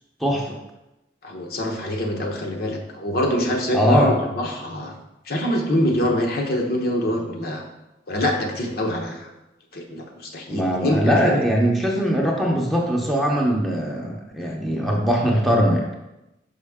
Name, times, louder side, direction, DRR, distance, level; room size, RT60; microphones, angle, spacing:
voice 1, 0.2-0.6 3.7-4.1 10.5-15.9, equal, ahead, -2 dB, 0.8 m, -21 dB
voice 2, 1.2-4.9 5.3-7.6 8.1-9.3 9.7-11.4, left 1 dB, 55° left, 1 dB, 0.9 m, -25 dB
5.9 x 5.5 x 3.6 m, 0.96 s
head